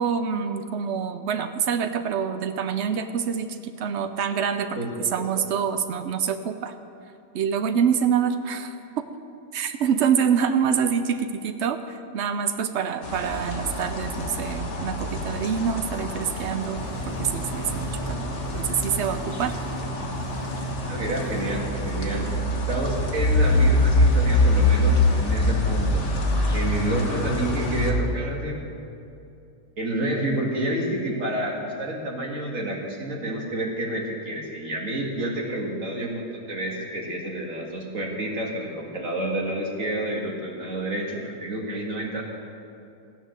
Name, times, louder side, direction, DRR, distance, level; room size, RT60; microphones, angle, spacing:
voice 1, 0.0-4.7 5.1-6.7 7.3-9.1 9.5-16.8 17.2-19.5, right 7 dB, 85° right, 9 dB, 0.6 m, -26 dB
voice 2, 4.7-5.5 20.8-22.3 22.7-26.0 26.5-28.6 29.8-42.2, right 1 dB, 45° right, -1 dB, 2.3 m, -29 dB
sound 1, 13.0-27.9, left 1 dB, 45° left, 1.5 m, -25 dB
sound 2, 16.8-21.9, right 3 dB, 75° left, 3.4 m, -35 dB
14.5 x 10.0 x 6.5 m, 2.6 s
omnidirectional pair, 1.9 m